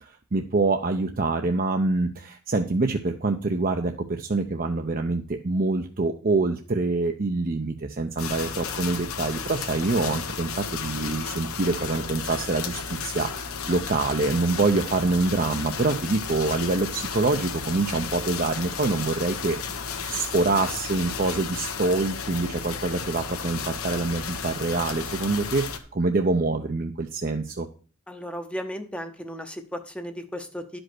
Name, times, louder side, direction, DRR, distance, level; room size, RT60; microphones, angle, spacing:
voice 1, 0.0-27.7, right 3 dB, 40° right, 4 dB, 0.6 m, -26 dB
sound 1, 8.2-25.8, left 6 dB, 85° left, 1.2 m, -33 dB
voice 2, 28.1-30.8, equal, 5° left, 5 dB, 0.8 m, -35 dB
11.0 x 5.2 x 6.1 m, 0.40 s
head